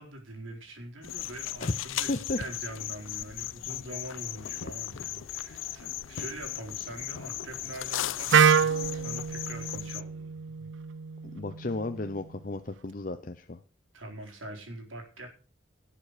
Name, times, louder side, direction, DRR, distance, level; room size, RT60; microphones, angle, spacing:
voice 1, 0.0-10.7 13.9-15.3, right 1 dB, 85° right, 2 dB, 4.2 m, -43 dB
sound 1, 1.0-10.0, left 12 dB, 85° left, 0.5 m, -37 dB
voice 2, 2.1-2.4 11.3-13.6, left 2 dB, 45° left, 9 dB, 0.7 m, -33 dB
sound 2, 3.9-9.8, equal, 5° left, 3.1 m, -59 dB
Wind instrument woodwind instrument, 8.3-12.2, right 7 dB, 70° right, 0.5 m, -26 dB
18.0 x 7.6 x 5.0 m, 0.40 s
head